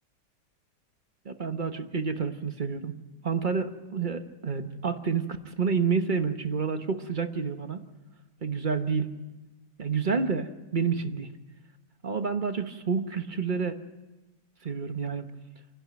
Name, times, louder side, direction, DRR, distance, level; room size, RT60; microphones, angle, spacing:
voice 1, 1.2-3.0 3.2-7.9 8.4-9.1 9.8-11.3 12.0-13.8 14.6-15.3, right 5 dB, 35° right, 8 dB, 1.0 m, -29 dB
28.0 x 11.0 x 9.3 m, 1.1 s
omnidirectional pair, 1.9 m